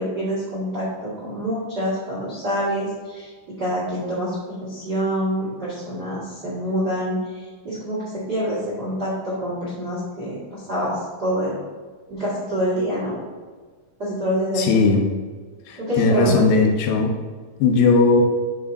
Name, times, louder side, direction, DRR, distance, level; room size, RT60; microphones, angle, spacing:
voice 1, 0.0-3.3 3.6-10.9 11.2-11.6 12.1-13.2 14.0-14.8 15.8-16.3, equal, 60° right, -8 dB, 1.0 m, -26 dB
voice 2, 14.6-15.0 15.7-17.1 17.6-18.2, left 3 dB, 90° left, 1 dB, 3.8 m, -17 dB
11.5 x 5.6 x 2.8 m, 1.5 s
omnidirectional pair, 5.6 m